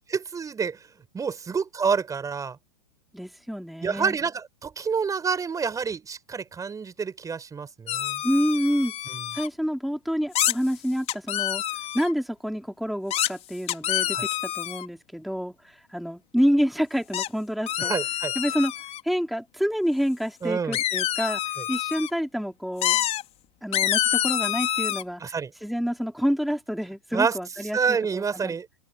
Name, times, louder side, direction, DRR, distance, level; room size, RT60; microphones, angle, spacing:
voice 1, 0.1-0.9 1.1-2.6 3.8-8.2 9.1-9.3 14.1-14.3 17.8-18.3 20.4-20.8 25.2-25.5 27.1-27.4 27.7-28.7, right 5 dB, 15° right, 5.5 m, -28 dB
voice 2, 3.1-4.2 8.2-8.9 9.3-11.6 11.9-17.9 18.4-18.7 19.0-21.4 21.7-23.0 23.6-25.3 25.6-28.6, equal, ahead, 4.2 m, -28 dB
sound 1, 7.9-9.5 10.3-10.5 11.1-12.1 13.1-13.3 13.7-14.9 17.1-17.3 17.7-19.0 20.7-22.1 22.8-23.2 23.7-25.0, left 12 dB, 30° left, 4.7 m, -27 dB
open air
hypercardioid pair, 110°, 20 cm